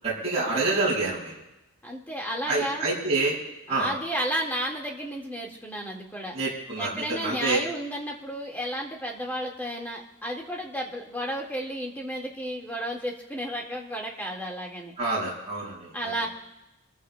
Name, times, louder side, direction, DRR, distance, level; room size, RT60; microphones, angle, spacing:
voice 1, 0.0-1.3 2.5-3.3 3.7-3.9 6.3-7.6 15.0-15.9, right 3 dB, 30° right, -7 dB, 6.3 m, -27 dB
voice 2, 1.8-2.9 3.7-6.3 6.8-14.9 15.9-16.3, equal, 10° left, -1 dB, 1.8 m, -32 dB
29.0 x 14.5 x 2.3 m, 0.98 s
head